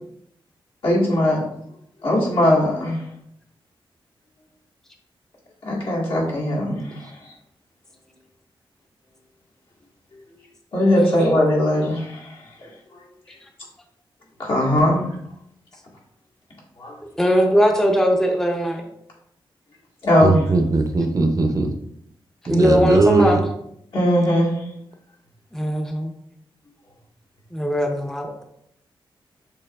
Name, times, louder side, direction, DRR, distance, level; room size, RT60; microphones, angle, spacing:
voice 1, 0.8-1.4 2.0-3.0 5.6-7.3 10.7-12.7 14.4-15.0 16.8-17.0 20.0-20.4 23.9-24.5, left 1 dB, 70° left, -5 dB, 1.8 m, -19 dB
voice 2, 17.2-18.8 22.5-23.4 25.5-26.1 27.5-28.3, equal, 5° left, 3 dB, 0.6 m, -19 dB
voice 3, 20.2-21.7 22.5-23.4, right 3 dB, 40° right, 5 dB, 0.6 m, -19 dB
6.8 x 3.0 x 2.4 m, 0.74 s
cardioid pair, 85°, 9 cm